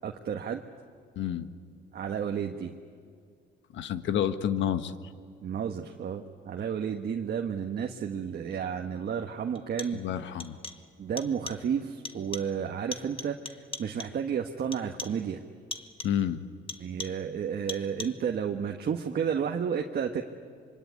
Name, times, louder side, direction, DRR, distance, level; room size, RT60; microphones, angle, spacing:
voice 1, 0.0-0.6 1.9-2.8 5.4-10.0 11.0-13.3 13.8-15.4 16.8-20.2, right 7 dB, 55° right, 3 dB, 1.5 m, -31 dB
voice 2, 1.2-1.5 3.7-4.9 9.9-10.6 16.0-16.4, left 9 dB, 75° left, 10 dB, 1.5 m, -29 dB
Tapping Glass, 8.5-8.6 9.5-10.1 10.4-10.9 11.2-11.7 12.0-12.6 12.9-14.3 14.7-15.3 15.7-16.3 16.7-17.3 17.7-18.3, left 3 dB, 30° left, 1.5 m, -41 dB
25.5 x 24.5 x 9.5 m, 2.2 s
cardioid pair, 95°, 19 cm